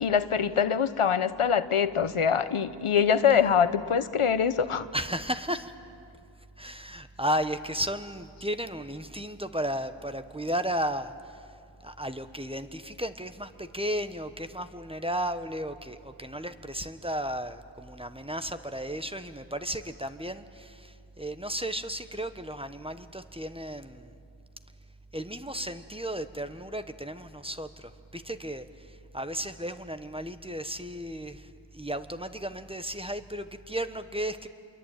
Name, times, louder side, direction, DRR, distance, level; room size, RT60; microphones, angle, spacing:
voice 1, 0.0-4.9, left 7 dB, 90° left, 13 dB, 0.9 m, -24 dB
voice 2, 4.9-5.7 6.6-11.4 11.8-24.1 25.1-34.5, equal, 10° right, 10 dB, 1.1 m, -34 dB
27.5 x 23.0 x 9.0 m, 2.4 s
wide cardioid pair, 50°, 49 cm